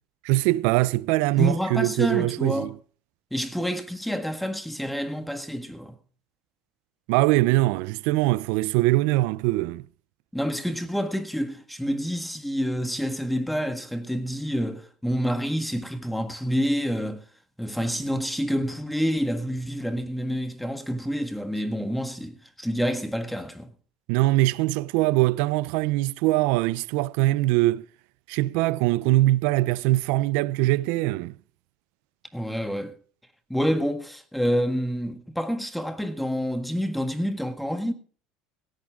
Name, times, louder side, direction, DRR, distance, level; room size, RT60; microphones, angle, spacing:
voice 1, 0.2-2.7 7.1-9.8 24.1-27.8 28.3-31.4, right 18 dB, 70° right, 0.5 m, -22 dB
voice 2, 1.4-2.7 3.3-5.9 10.3-17.2 17.6-23.7 32.3-32.9 33.5-37.9, equal, ahead, 1.7 m, -28 dB
17.0 x 11.0 x 3.6 m
supercardioid pair, 100°, 3 cm